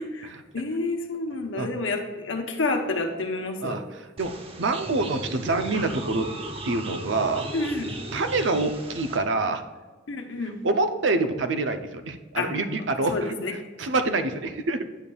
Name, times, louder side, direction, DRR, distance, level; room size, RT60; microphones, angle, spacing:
voice 1, 0.5-3.8 7.5-7.9 10.1-10.6 12.4-12.5 13.1-13.5, left 2 dB, 80° left, 4 dB, 0.9 m, -29 dB
voice 2, 3.6-6.3 6.6-7.5 8.1-9.6 10.4-14.9, right 3 dB, 75° right, 8 dB, 0.6 m, -26 dB
sound 1, 4.2-9.2, right 2 dB, 30° right, 0.7 m, -36 dB
9.1 x 6.8 x 2.3 m, 1.3 s
head